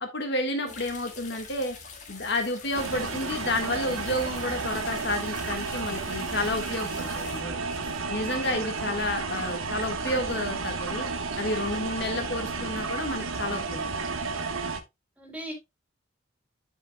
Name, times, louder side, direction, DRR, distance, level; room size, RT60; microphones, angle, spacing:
voice 1, 0.0-1.8 2.1-7.7 8.1-11.0 11.4-13.9, left 1 dB, 55° left, 5 dB, 1.5 m, -30 dB
sound 1, 0.7-7.4, left 5 dB, 35° left, 1.7 m, -44 dB
sound 2, 2.7-14.8, right 4 dB, 90° right, 1.3 m, -32 dB
voice 2, 8.5-9.0 15.2-15.5, equal, 5° right, 1 dB, 2.7 m, -40 dB
13.5 x 5.1 x 2.2 m, 0.21 s
head